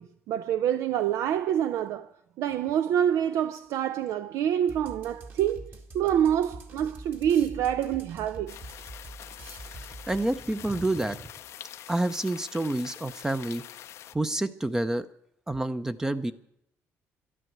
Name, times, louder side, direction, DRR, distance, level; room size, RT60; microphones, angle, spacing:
voice 1, 0.0-2.1 2.4-8.6, right 10 dB, 80° right, 0.5 m, -26 dB
sound 1, 4.7-10.5, right 2 dB, 45° right, 2.1 m, -44 dB
sound 2, 8.5-14.1, left 11 dB, 65° left, 0.5 m, -45 dB
voice 2, 10.1-11.2 11.9-13.6 14.1-15.1 15.5-16.3, right 1 dB, 10° right, 0.6 m, -28 dB
11.5 x 11.0 x 7.9 m
cardioid pair, 130°, 5 cm